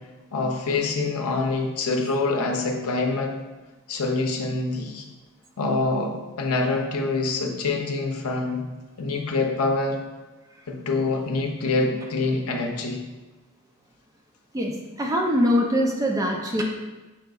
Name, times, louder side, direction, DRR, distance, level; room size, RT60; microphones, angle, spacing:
voice 1, 0.3-3.3 3.9-5.0 5.6-8.6 9.0-10.0 10.7-13.0, left 3 dB, 85° left, 2 dB, 0.6 m, -25 dB
voice 2, 14.5-16.6, equal, 15° right, 0 dB, 0.4 m, -23 dB
5.6 x 3.8 x 2.3 m, 1.2 s
head